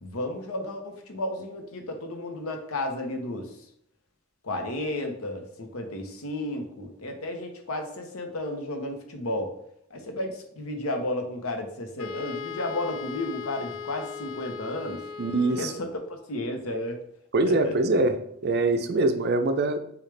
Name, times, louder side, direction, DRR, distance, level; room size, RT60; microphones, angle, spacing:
voice 1, 0.0-3.5 4.4-9.5 9.9-15.0 15.6-17.0 17.5-17.7, left 1 dB, 85° left, 4 dB, 0.9 m, -33 dB
Wind instrument woodwind instrument, 12.0-16.0, left 7 dB, 70° left, 0.3 m, -38 dB
voice 2, 15.2-15.7 17.3-18.2 18.4-19.8, right 2 dB, 50° right, 8 dB, 0.5 m, -23 dB
6.6 x 2.4 x 3.3 m, 0.72 s
head